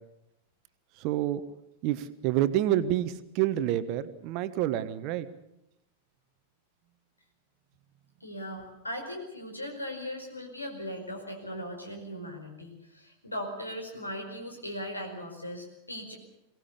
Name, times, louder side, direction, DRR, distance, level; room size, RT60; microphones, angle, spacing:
voice 1, 1.0-1.4 1.8-5.3, right 12 dB, 45° right, 12 dB, 1.3 m, -28 dB
voice 2, 8.2-16.2, equal, 80° left, 4 dB, 5.0 m, -38 dB
22.5 x 18.0 x 8.4 m, 0.84 s
figure-of-eight pair, 90°, 0 cm